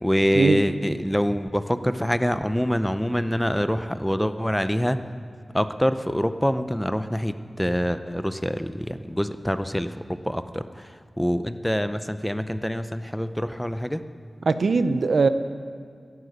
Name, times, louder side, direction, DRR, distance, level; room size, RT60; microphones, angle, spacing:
voice 1, 0.0-5.0 5.5-14.0, equal, 5° left, 11 dB, 0.6 m, -25 dB
voice 2, 14.5-15.3, right 4 dB, 80° right, 11 dB, 0.6 m, -20 dB
12.0 x 11.0 x 8.1 m, 2.1 s
wide cardioid pair, 70°, 0 cm